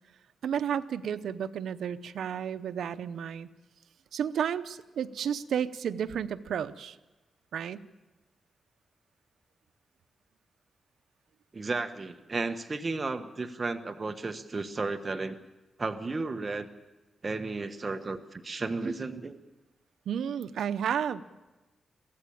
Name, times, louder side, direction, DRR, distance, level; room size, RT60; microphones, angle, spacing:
voice 1, 0.4-3.5 4.1-7.0 7.5-7.8 20.1-21.2, right 8 dB, 85° right, 12 dB, 0.8 m, -32 dB
voice 2, 11.5-15.4 15.8-16.7 17.2-19.4, right 3 dB, 35° right, 8 dB, 1.2 m, -33 dB
23.0 x 16.0 x 8.7 m, 1.1 s
cardioid pair, 90°, 0 cm